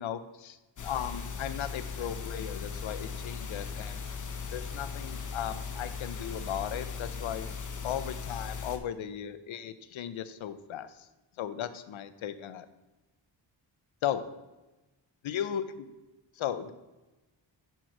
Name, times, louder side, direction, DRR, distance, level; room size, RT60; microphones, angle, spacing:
voice 1, 0.0-4.0 4.5-7.5 7.8-11.1 11.4-12.7 14.0-14.2 15.2-15.6 16.3-16.7, left 10 dB, 85° left, 12 dB, 0.7 m, -36 dB
sound 1, 0.8-8.8, left 5 dB, 40° left, 0.8 m, -38 dB
11.0 x 4.6 x 4.5 m, 1.1 s
wide cardioid pair, 130°, 46 cm